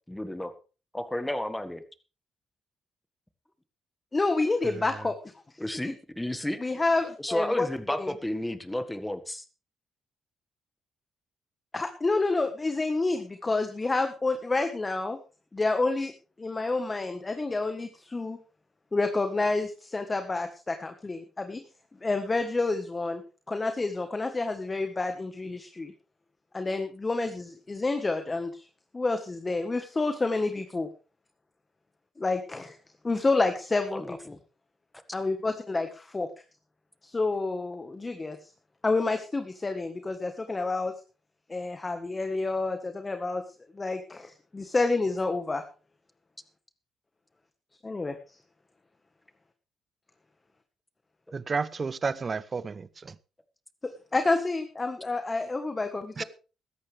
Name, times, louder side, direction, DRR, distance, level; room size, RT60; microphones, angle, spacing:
voice 1, 0.1-0.5 0.9-1.8 5.6-6.6 7.2-9.4 33.9-34.4, left 1 dB, 10° left, 1.7 m, -32 dB
voice 2, 4.1-5.2 5.8-5.9 6.6-7.7 8.0-8.1 11.7-15.2 15.5-16.1 16.4-18.4 18.9-21.6 22.0-23.2 23.5-25.9 26.5-28.6 28.9-30.9 32.2-32.7 33.0-34.4 35.1-36.3 37.0-38.4 38.8-40.9 41.5-43.4 43.7-45.6 47.8-48.2 53.8-56.2, left 3 dB, 25° left, 1.5 m, -29 dB
voice 3, 51.3-53.1 56.2-56.3, right 4 dB, 35° right, 0.8 m, -32 dB
16.5 x 13.5 x 3.5 m
cardioid pair, 90°, 0 cm